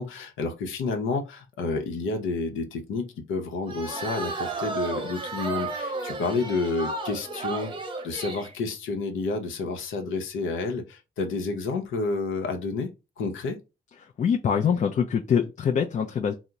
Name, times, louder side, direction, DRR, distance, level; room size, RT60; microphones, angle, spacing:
voice 1, 0.0-7.7 8.0-12.9 13.2-13.6, left 3 dB, 80° left, 0.7 m, -30 dB
sound 1, 3.7-8.5, right 3 dB, 25° right, 0.7 m, -33 dB
voice 2, 14.0-16.3, left 7 dB, 40° left, 0.4 m, -24 dB
2.8 x 2.0 x 3.5 m
cardioid pair, 90°, 20 cm